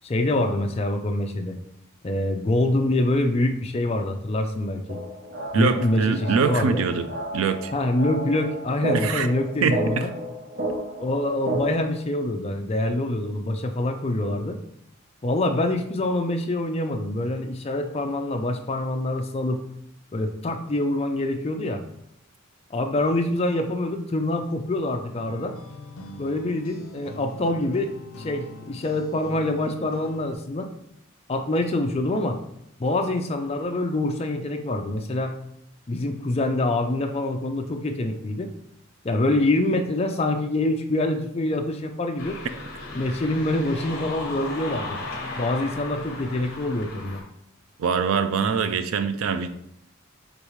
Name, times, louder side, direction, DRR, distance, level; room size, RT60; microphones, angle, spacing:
voice 1, 0.0-1.6 2.0-5.0 5.5-6.8 7.7-10.1 11.0-14.6 15.2-19.6 20.1-21.8 22.7-25.5 26.2-27.9 28.2-30.7 31.3-32.4 32.8-35.3 35.9-38.5 39.0-42.4 42.9-45.0 45.3-47.2, left 1 dB, 30° left, 5 dB, 0.4 m, -25 dB
sound 1, 4.9-11.9, right 1 dB, 50° right, 0.7 m, -32 dB
voice 2, 5.5-7.1 7.3-7.7 8.9-9.3 9.6-9.8 47.8-49.5, right 5 dB, 75° right, 11 dB, 0.4 m, -23 dB
sound 2, 25.1-30.4, left 2 dB, 85° left, 0.5 m, -42 dB
sound 3, 42.2-47.2, left 2 dB, 45° left, 1.1 m, -35 dB
5.1 x 3.1 x 3.1 m, 0.76 s
head